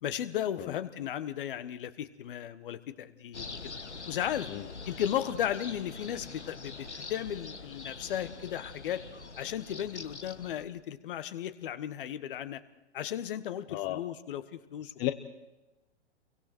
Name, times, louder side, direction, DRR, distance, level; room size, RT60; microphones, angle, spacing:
voice 1, 0.0-3.4 4.1-4.5 4.8-9.0 9.4-12.6 12.9-15.1, left 10 dB, 50° left, 12 dB, 1.5 m, -35 dB
sound 1, 3.3-10.6, left 4 dB, 85° left, 1.3 m, -44 dB
voice 2, 13.7-14.0 15.0-15.1, left 16 dB, 30° left, 8 dB, 1.2 m, -32 dB
30.0 x 23.5 x 4.5 m, 1.0 s
figure-of-eight pair, 105°, 34 cm